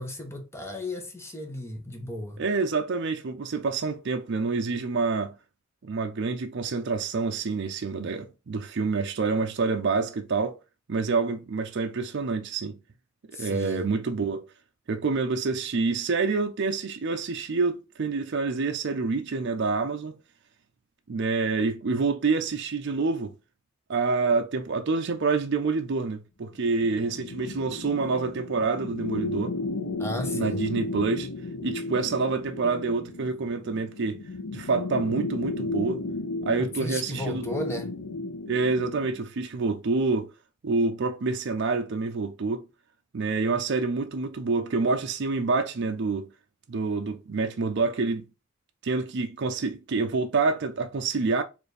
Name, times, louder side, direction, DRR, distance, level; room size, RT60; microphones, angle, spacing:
voice 1, 0.0-2.4 13.3-13.9 30.0-30.6 36.6-37.9, left 1 dB, 10° left, 0.8 m, -34 dB
voice 2, 2.4-5.3 5.8-10.6 10.9-12.8 13.3-14.5 14.9-20.1 21.1-23.3 23.9-29.5 30.3-31.3 31.6-34.2 34.5-36.0 36.4-37.4 38.5-40.3 40.6-42.6 43.1-46.3 46.7-48.2 48.8-51.4, right 4 dB, 55° right, 0.5 m, -27 dB
sound 1, 26.8-39.2, left 2 dB, 85° left, 0.6 m, -34 dB
4.3 x 2.5 x 3.3 m
head